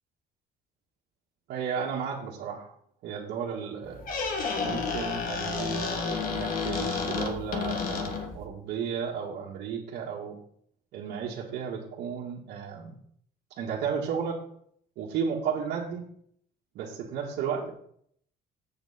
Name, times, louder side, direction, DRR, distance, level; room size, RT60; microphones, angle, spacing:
voice 1, 1.5-2.7 3.0-4.0 4.6-10.4 10.9-12.9 13.6-14.4 15.0-16.0 16.8-17.7, right 7 dB, 80° right, -4 dB, 1.7 m, -33 dB
Squeak, 3.8-8.5, left 5 dB, 55° left, 1.8 m, -31 dB
8.0 x 7.3 x 4.2 m, 0.64 s
cardioid pair, 110°, 17 cm